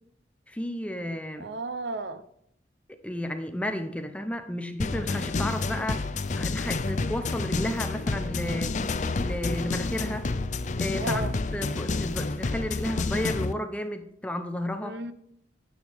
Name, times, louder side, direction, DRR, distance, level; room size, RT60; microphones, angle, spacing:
voice 1, 0.5-1.5 3.0-6.1 6.3-8.8 9.2-10.3 10.8-11.2 11.5-15.0, left 1 dB, 5° left, 6 dB, 0.7 m, -32 dB
voice 2, 1.4-2.2 11.0-11.4 14.8-15.1, right 2 dB, 70° right, 12 dB, 0.7 m, -33 dB
sound 1, 4.8-13.5, left 3 dB, 40° left, 0.5 m, -29 dB
9.6 x 8.8 x 3.5 m, 0.72 s
head